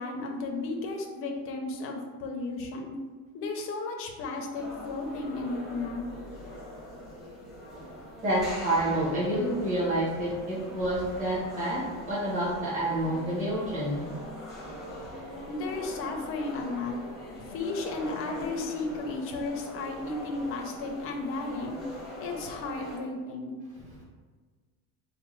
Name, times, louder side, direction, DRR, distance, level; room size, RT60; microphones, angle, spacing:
voice 1, 0.0-2.9 3.3-6.1 15.5-17.0 17.5-21.8 22.2-23.5, left 3 dB, 35° left, 2 dB, 0.5 m, -34 dB
sound 1, 4.5-23.0, left 1 dB, ahead, 0.8 m, -42 dB
voice 2, 8.2-11.8 12.1-14.0, right 1 dB, 20° right, -7 dB, 1.1 m, -28 dB
4.5 x 2.2 x 3.1 m, 1.4 s
cardioid pair, 175°, 37 cm